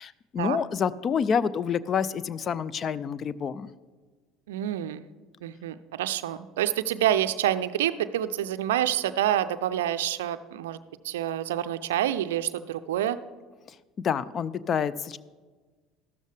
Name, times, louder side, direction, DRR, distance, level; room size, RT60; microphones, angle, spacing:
voice 1, 0.0-3.7 14.0-15.2, left 7 dB, 40° left, 18 dB, 0.4 m, -28 dB
voice 2, 4.5-5.0 5.4-10.8 11.0-13.2, right 11 dB, 70° right, 13 dB, 0.4 m, -27 dB
13.5 x 12.5 x 3.4 m, 1.4 s
figure-of-eight pair, 65°, 0 cm